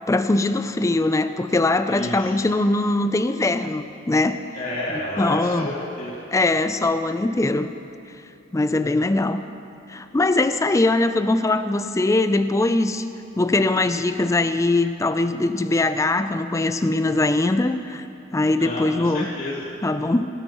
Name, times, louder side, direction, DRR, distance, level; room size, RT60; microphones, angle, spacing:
voice 1, 0.1-4.4 4.9-5.7 6.3-7.7 8.5-9.4 9.9-13.0 13.4-18.1 18.3-19.3 19.8-20.3, left 2 dB, 15° left, 10 dB, 0.4 m, -21 dB
voice 2, 1.9-2.3 4.5-6.2 18.5-19.7, left 1 dB, 45° left, -7 dB, 3.0 m, -30 dB
18.0 x 12.0 x 3.1 m, 2.7 s
head